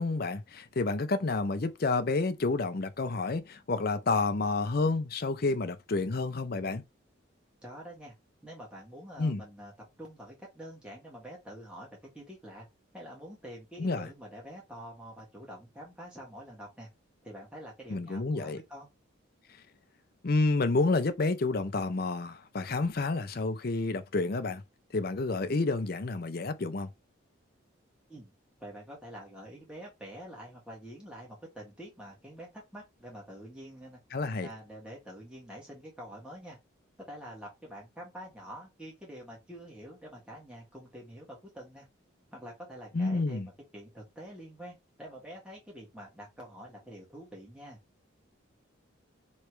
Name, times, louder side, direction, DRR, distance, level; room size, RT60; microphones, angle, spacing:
voice 1, 0.0-6.8 9.2-9.4 13.8-14.1 17.9-18.6 20.2-24.6 24.9-26.9 34.1-34.5 42.9-43.5, left 3 dB, 45° left, 0.5 m, -29 dB
voice 2, 7.6-8.1 8.4-9.7 10.0-12.6 12.9-16.9 17.2-18.9 28.1-28.3 28.6-34.0 34.4-36.6 37.0-41.9 42.3-47.8, equal, 5° right, 1.6 m, -46 dB
3.3 x 3.1 x 4.5 m
head